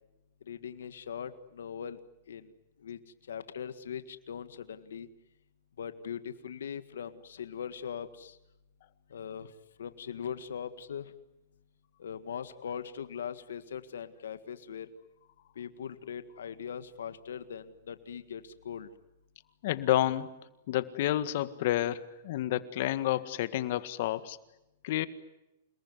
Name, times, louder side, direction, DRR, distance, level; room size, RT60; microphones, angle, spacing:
voice 1, 0.5-2.0 2.3-2.5 2.8-3.0 3.3-5.1 5.8-8.4 9.1-9.5 9.8-11.1 12.0-14.9 15.6-18.9, left 8 dB, 85° left, 11 dB, 1.7 m, -40 dB
voice 2, 19.6-20.3 20.7-24.4 24.8-25.1, left 14 dB, 60° left, 13 dB, 1.7 m, -29 dB
28.5 x 20.0 x 9.6 m, 0.93 s
hypercardioid pair, 135°, 0 cm